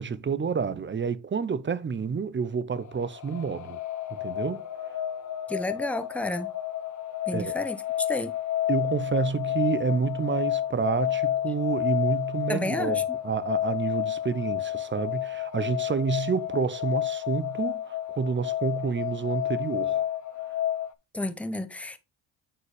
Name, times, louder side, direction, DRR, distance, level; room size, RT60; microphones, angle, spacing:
voice 1, 0.0-3.8 4.2-4.6 7.3-7.6 8.7-20.1, right 5 dB, 25° right, 0.9 m, -29 dB
sound 1, 2.8-20.9, left 12 dB, 45° left, 0.8 m, -30 dB
voice 2, 5.5-6.5 7.3-8.3 12.5-13.0 21.1-22.0, left 1 dB, 5° left, 1.0 m, -31 dB
9.2 x 4.2 x 3.2 m
supercardioid pair, 75°, 42 cm